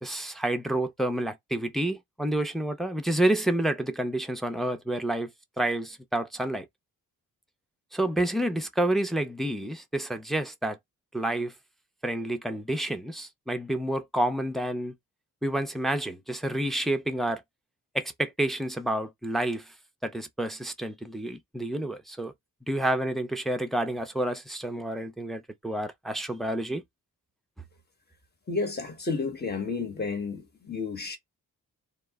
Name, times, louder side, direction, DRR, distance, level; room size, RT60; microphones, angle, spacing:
voice 1, 0.0-5.3 5.6-6.7 7.9-10.8 11.1-11.5 12.0-14.9 15.4-17.4 17.9-19.7 20.0-22.3 22.7-26.8, right 1 dB, ahead, 0.5 m, -29 dB
voice 2, 28.5-31.2, left 4 dB, 25° left, 1.0 m, -31 dB
2.0 x 2.0 x 3.3 m
cardioid pair, 75°, 36 cm